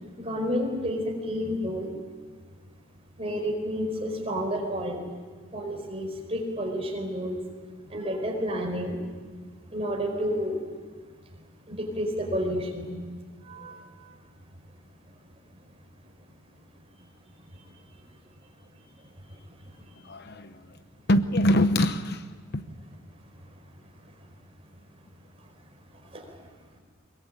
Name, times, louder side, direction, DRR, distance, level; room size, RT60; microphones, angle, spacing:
voice 1, 0.2-1.9 3.2-5.0 5.5-7.4 7.9-9.0 9.7-10.6 11.7-12.9 13.5-13.8 26.1-26.2, equal, 30° right, 4.7 m, -30 dB
voice 2, 20.0-20.8 21.1-22.3 22.5-22.7, left 1 dB, 50° left, 0.9 m, -24 dB
23.0 x 22.5 x 8.7 m
head